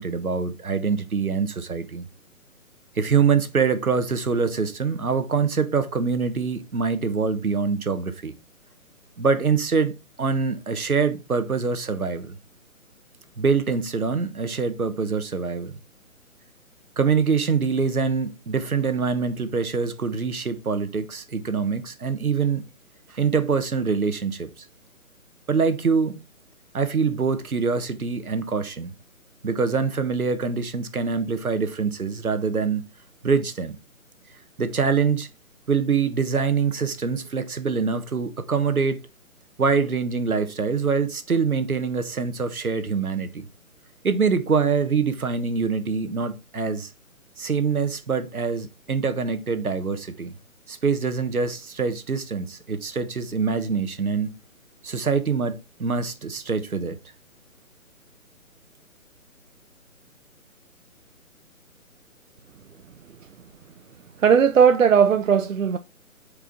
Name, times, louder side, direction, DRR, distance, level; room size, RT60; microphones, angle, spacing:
voice 1, 0.0-2.0 3.0-8.3 9.2-12.4 13.4-15.7 17.0-22.6 23.1-24.7 25.5-26.2 26.7-28.9 29.4-32.9 33.2-33.8 34.6-35.3 35.7-39.0 39.6-43.4 44.0-46.9 47.4-50.3 50.7-54.4 54.8-57.0, right 5 dB, 80° right, 1.2 m, -24 dB
voice 2, 64.2-65.8, right 7 dB, 65° right, 0.6 m, -17 dB
7.0 x 4.8 x 4.0 m
figure-of-eight pair, 140°, 43 cm